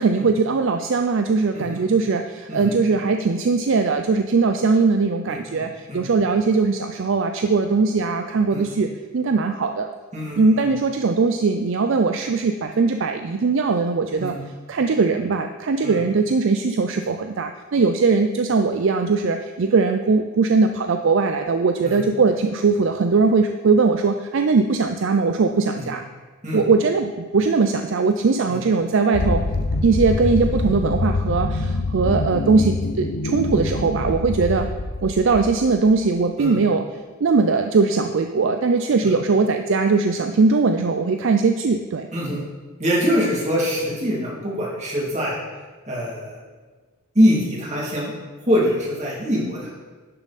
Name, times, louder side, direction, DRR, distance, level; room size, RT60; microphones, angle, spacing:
voice 1, 0.0-9.9 10.4-14.3 14.7-26.0 26.5-29.4 29.8-34.7 35.0-36.8 37.2-42.1, right 4 dB, 55° right, 6 dB, 0.4 m, -20 dB
voice 2, 1.5-1.8 2.5-2.7 5.3-6.0 8.5-8.7 10.1-10.7 14.2-14.4 15.8-16.0 21.8-22.0 25.7-25.9 26.4-26.6 28.5-28.6 36.4-36.6 39.0-39.2 42.1-42.4 42.8-45.4 45.9-46.4 47.1-48.1 48.4-49.7, equal, 30° right, -4 dB, 2.5 m, -24 dB
sound 1, 29.1-35.9, left 2 dB, 75° left, 0.7 m, -25 dB
11.0 x 7.0 x 4.2 m, 1.3 s
head